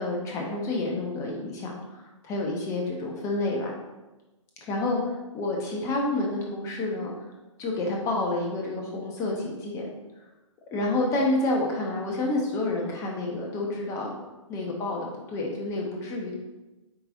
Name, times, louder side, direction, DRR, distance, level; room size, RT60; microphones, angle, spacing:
voice 1, 0.0-3.7 4.7-7.1 7.6-9.9 10.7-14.1 14.5-16.3, left 2 dB, 20° left, -1 dB, 1.2 m, -29 dB
8.9 x 4.6 x 2.7 m, 1.1 s
figure-of-eight pair, 130°, 17 cm